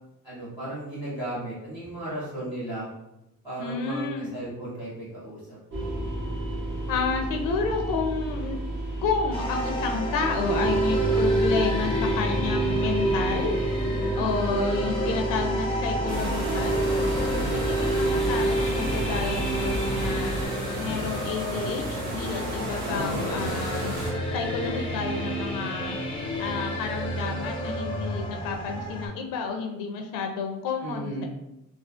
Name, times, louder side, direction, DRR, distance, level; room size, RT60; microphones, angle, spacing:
voice 1, 0.2-2.9 3.4-5.8 13.8-14.2 17.0-17.4 22.7-23.5 30.8-31.3, right 1 dB, 10° right, -10 dB, 0.9 m, -35 dB
voice 2, 3.6-4.3 6.9-8.6 9.0-13.6 14.2-16.9 17.7-20.4 20.8-23.9 24.3-26.0 26.4-31.3, left 5 dB, 85° left, 3 dB, 0.5 m, -30 dB
sound 1, 5.7-20.5, right 2 dB, 40° right, 0.8 m, -28 dB
sound 2, 9.3-29.1, left 1 dB, 15° left, 0.5 m, -33 dB
sound 3, 16.1-24.1, right 1 dB, 65° right, 1.0 m, -33 dB
2.4 x 2.4 x 2.4 m, 0.91 s
cardioid pair, 165°, 32 cm